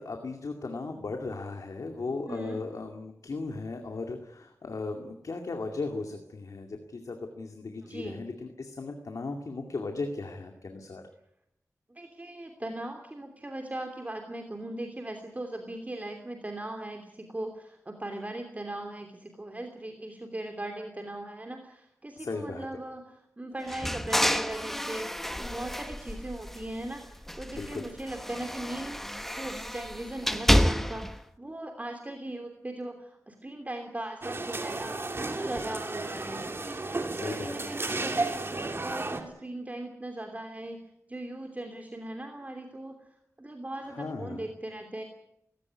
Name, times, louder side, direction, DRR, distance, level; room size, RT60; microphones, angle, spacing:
voice 1, 0.0-11.0 22.2-22.7 27.5-27.9 37.1-37.7 43.8-44.4, left 3 dB, 85° left, 4 dB, 2.3 m, -36 dB
voice 2, 2.3-2.6 7.8-8.2 11.9-34.9 35.2-38.4 38.8-40.8 41.1-42.9 43.4-45.0, right 1 dB, 25° right, 4 dB, 3.0 m, -39 dB
sound 1, 23.7-26.9 27.2-31.2, equal, 5° left, 1.1 m, -29 dB
sound 2, 34.2-39.2, right 2 dB, 45° right, 2.8 m, -33 dB
19.0 x 17.5 x 9.6 m, 0.79 s
wide cardioid pair, 75°, 6 cm